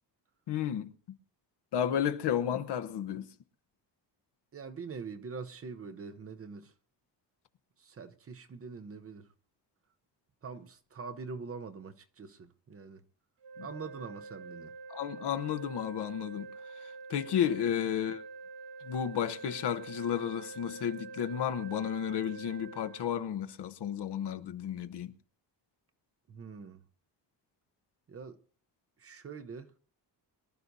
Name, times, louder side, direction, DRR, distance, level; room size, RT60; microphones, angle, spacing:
voice 1, 0.5-0.9 1.7-3.2 13.6-13.7 14.9-16.5 17.1-18.2 18.9-25.1, left 9 dB, 70° left, 1.0 m, -32 dB
voice 2, 4.5-6.7 7.8-9.3 10.4-13.0 13.6-14.8 26.3-26.8 28.1-28.4 29.0-29.7, right 5 dB, 35° right, 0.7 m, -44 dB
sound 1, 13.4-23.1, right 4 dB, 80° right, 1.0 m, -46 dB
23.0 x 12.5 x 2.7 m
cardioid pair, 155°, 43 cm